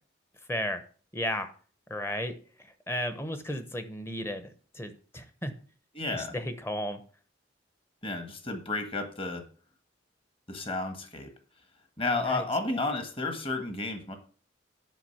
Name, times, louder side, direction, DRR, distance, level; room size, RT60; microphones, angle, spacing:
voice 1, 0.5-0.8 1.1-1.5 1.9-2.3 2.9-4.5 4.7-5.5 6.1-7.0 12.2-12.5, equal, 15° left, 10 dB, 0.9 m, -33 dB
voice 2, 5.9-6.3 8.0-9.4 10.5-11.3 12.0-14.2, left 3 dB, 30° left, 6 dB, 1.5 m, -32 dB
9.2 x 6.0 x 5.8 m, 0.41 s
head